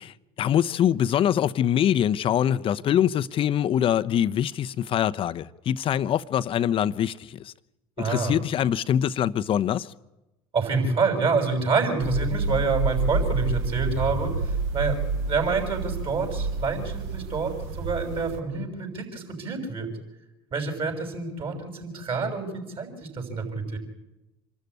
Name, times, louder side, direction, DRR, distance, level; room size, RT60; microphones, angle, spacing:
voice 1, 0.0-7.5 8.0-9.9, left 10 dB, 40° left, 0.8 m, -24 dB
voice 2, 8.0-8.3 10.5-19.9 20.5-23.8, right 4 dB, 40° right, 6.5 m, -27 dB
sound 1, 12.0-18.4, right 3 dB, 65° right, 1.5 m, -29 dB
26.5 x 13.0 x 9.7 m
hypercardioid pair, 80°, 14 cm